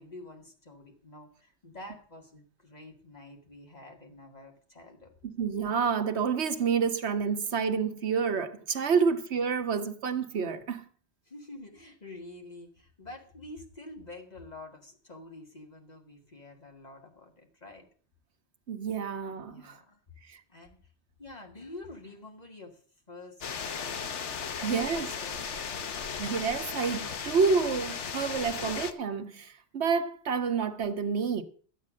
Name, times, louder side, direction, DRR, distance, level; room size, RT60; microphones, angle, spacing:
voice 1, 0.0-5.1 11.3-17.9 19.5-20.0 20.5-20.8 21.2-22.8 23.1-24.2 24.5-25.5, left 2 dB, 35° left, 2.2 m, -48 dB
voice 2, 5.2-10.8 18.7-19.8 24.6-25.1 26.2-31.4, right 5 dB, 75° right, 1.3 m, -29 dB
sound 1, 23.4-28.9, left 6 dB, 90° left, 1.3 m, -36 dB
12.5 x 8.4 x 6.3 m
omnidirectional pair, 1.2 m